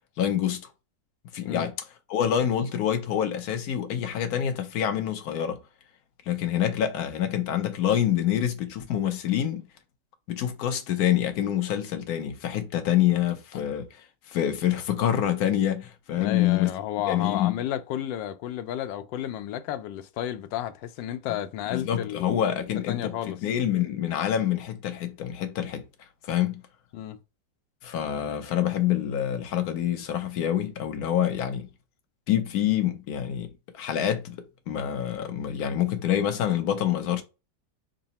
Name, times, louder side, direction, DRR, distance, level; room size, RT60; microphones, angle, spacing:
voice 1, 0.2-0.6 1.3-1.7 2.1-5.6 6.3-9.6 10.3-13.9 14.3-16.7 17.1-17.6 21.7-25.9 26.2-26.6 27.8-31.7 32.3-37.2, left 10 dB, 65° left, 1.1 m, -26 dB
voice 2, 16.1-22.4 22.9-23.4 26.9-27.2, left 11 dB, 90° left, 1.3 m, -32 dB
3.8 x 2.0 x 4.0 m
omnidirectional pair, 1.9 m